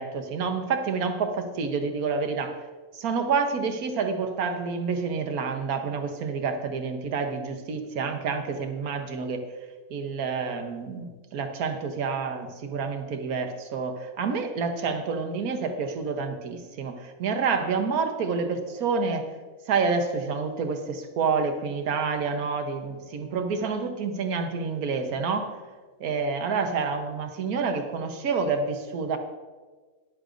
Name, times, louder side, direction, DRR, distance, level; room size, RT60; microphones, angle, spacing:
voice 1, 0.0-2.6 2.9-9.4 9.9-19.3 19.7-25.5 26.0-29.2, right 5 dB, 85° right, 6 dB, 1.4 m, -28 dB
13.0 x 10.5 x 2.5 m, 1.4 s
omnidirectional pair, 1.5 m